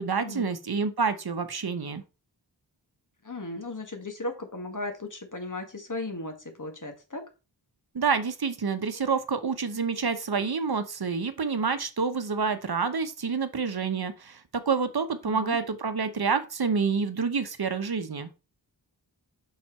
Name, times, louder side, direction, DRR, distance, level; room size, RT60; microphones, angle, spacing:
voice 1, 0.0-2.0 7.9-14.4 14.7-18.3, right 5 dB, 60° right, 10 dB, 0.8 m, -28 dB
voice 2, 3.2-7.2 15.2-15.6, left 2 dB, 45° left, 5 dB, 1.6 m, -36 dB
5.7 x 4.4 x 4.4 m, 0.30 s
wide cardioid pair, 45°, 43 cm